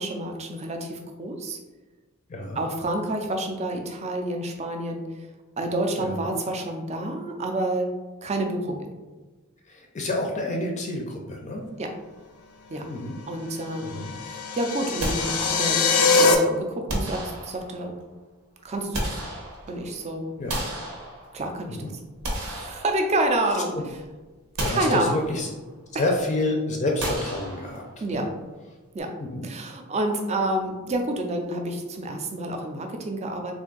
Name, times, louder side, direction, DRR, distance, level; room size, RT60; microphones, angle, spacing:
voice 1, 0.0-1.6 2.6-5.3 5.6-7.9 8.2-8.8 11.8-11.9 12.7-12.9 13.3-17.9 18.6-19.2 19.7-20.3 21.3-21.8 22.3-23.7 24.7-25.2 28.0-28.3 28.9-29.1 29.4-33.5, right 1 dB, 30° right, 3 dB, 0.4 m, -28 dB
voice 2, 2.3-2.6 6.0-6.2 9.7-11.6 12.9-13.2 13.8-14.1 20.4-20.5 21.7-21.9 24.6-25.5 25.9-27.8 28.1-28.3 29.2-29.5, left 2 dB, 30° left, 0 dB, 0.4 m, -28 dB
sound 1, 13.8-16.3, left 4 dB, 80° left, 0.5 m, -22 dB
sound 2, 15.0-16.0 16.9-17.9 18.6-19.9 20.5-21.6 22.0-23.5 23.9-24.0 24.6-25.6 27.0-28.1, right 1 dB, 85° right, 1.0 m, -33 dB
3.4 x 2.6 x 3.8 m, 1.2 s
head